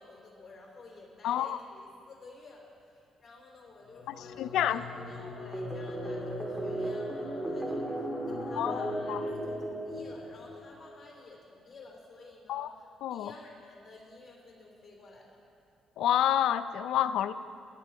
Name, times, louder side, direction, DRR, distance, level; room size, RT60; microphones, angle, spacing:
voice 1, 0.0-15.4, left 3 dB, 35° left, -2 dB, 3.4 m, -52 dB
voice 2, 1.2-1.6 4.2-4.8 8.6-9.2 12.5-12.7 13.0-13.3 16.0-17.3, left 11 dB, 85° left, 13 dB, 0.4 m, -29 dB
sound 1, 3.8-10.8, left 3 dB, 60° left, 1.4 m, -43 dB
sound 2, 5.5-10.7, right 1 dB, 15° right, 1.7 m, -36 dB
17.5 x 10.5 x 4.7 m, 2.4 s
cardioid pair, 90°, 0 cm